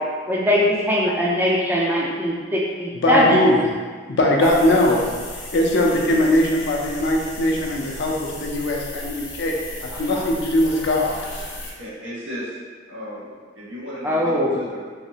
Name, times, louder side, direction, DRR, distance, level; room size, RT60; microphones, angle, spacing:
voice 1, 0.3-3.4 4.4-4.5 9.9-10.2 14.0-14.6, left 1 dB, 10° right, -4 dB, 0.4 m, -21 dB
voice 2, 2.9-3.7 4.2-5.1 5.5-11.1, left 1 dB, 65° left, -1 dB, 0.5 m, -20 dB
sound 1, 4.4-11.7, left 1 dB, 85° left, 0.8 m, -36 dB
voice 3, 11.8-12.6 12.8-14.9, equal, 90° right, -8 dB, 1.2 m, -35 dB
3.1 x 2.8 x 2.7 m, 1.5 s
head